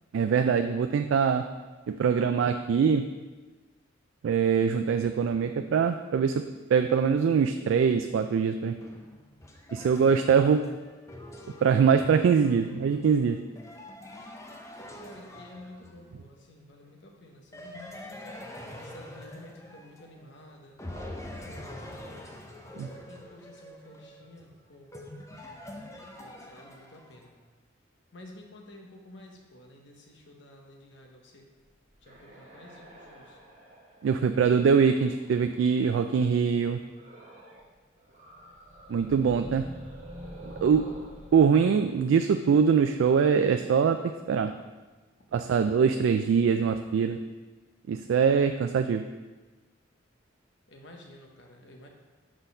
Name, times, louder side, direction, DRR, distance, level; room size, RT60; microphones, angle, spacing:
voice 1, 0.1-1.4 1.9-3.0 4.2-6.4 6.7-8.8 9.7-10.6 11.6-13.4 22.8-22.9 34.0-36.8 38.9-39.7 40.6-40.9 41.3-44.5 45.3-47.2 47.9-49.0, right 6 dB, 85° right, 7 dB, 0.3 m, -23 dB
sound 1, 8.8-16.2 17.5-20.4 20.8-27.3, left 1 dB, 15° left, 0.6 m, -45 dB
voice 2, 15.0-17.8 18.0-18.3 18.8-20.8 21.3-21.8 22.7-24.9 26.2-27.4 28.1-31.5 32.0-33.4 50.7-51.9, left 1 dB, 70° left, 2 dB, 1.0 m, -51 dB
sound 2, 31.7-35.8 36.9-37.7 38.0-42.8, equal, 40° right, 1.4 m, -48 dB
6.2 x 3.9 x 5.4 m, 1.3 s
head